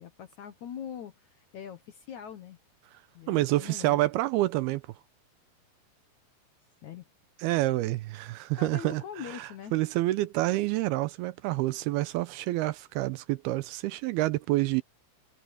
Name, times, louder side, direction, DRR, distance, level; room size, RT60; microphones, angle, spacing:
voice 1, 0.0-2.6 3.1-4.0 6.8-7.1 8.6-9.7, left 8 dB, 65° left, 2.0 m, -42 dB
voice 2, 3.3-4.8 7.4-14.8, right 17 dB, 80° right, 2.4 m, -28 dB
omnidirectional pair, 4.7 m